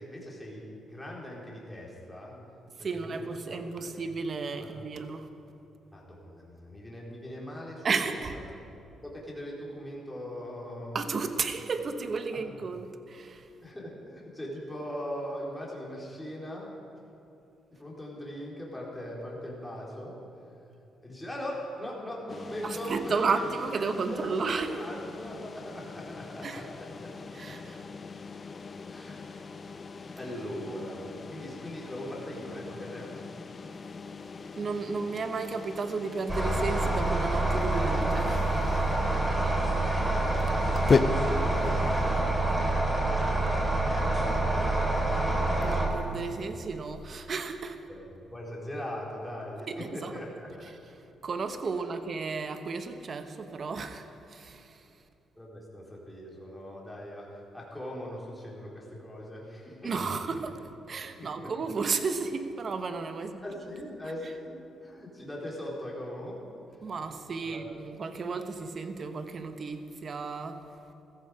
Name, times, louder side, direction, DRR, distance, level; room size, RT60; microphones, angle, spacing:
voice 1, 0.0-2.4 2.8-4.0 4.6-4.9 5.9-8.4 9.0-11.0 12.3-12.4 13.6-16.7 17.7-20.2 21.0-23.3 24.1-27.1 27.4-27.8 28.9-29.5 30.2-33.2 41.5-42.4 44.0-45.4 47.9-50.8 55.4-60.4 61.2-61.7 63.4-64.6 64.8-66.4 67.4-67.6, equal, 10° left, -4 dB, 4.0 m, -40 dB
voice 2, 2.8-5.3 7.8-8.3 10.9-13.5 22.6-24.7 26.4-26.6 27.3-27.8 34.6-38.5 45.6-47.8 49.7-50.1 51.2-54.8 59.8-60.6 60.9-63.4 66.8-70.6, right 4 dB, 50° right, 8 dB, 1.1 m, -33 dB
sound 1, 22.3-42.2, left 4 dB, 40° left, 0.7 m, -37 dB
sound 2, 36.3-45.9, right 2 dB, 20° right, 3.1 m, -27 dB
15.0 x 14.5 x 5.0 m, 2.8 s
cardioid pair, 85°, 0 cm